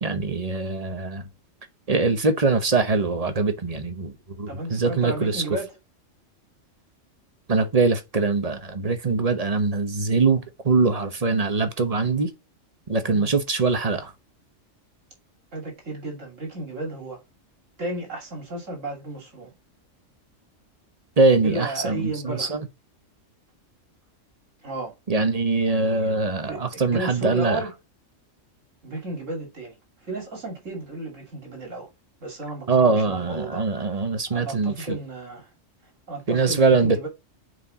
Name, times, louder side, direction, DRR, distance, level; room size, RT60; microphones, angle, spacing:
voice 1, 0.0-1.3 1.9-5.4 7.5-12.3 12.9-14.1 21.2-22.7 25.1-27.6 32.7-35.0 36.3-37.1, right 3 dB, 30° right, 1.0 m, -22 dB
voice 2, 4.5-5.7 13.1-13.3 15.5-17.2 17.8-19.5 21.4-22.6 24.6-25.0 25.6-26.2 26.4-27.7 28.8-29.8 30.0-31.9 32.2-33.6 34.3-35.5 36.1-37.1, right 2 dB, 75° right, 3.0 m, -33 dB
6.5 x 4.7 x 3.9 m
omnidirectional pair, 1.3 m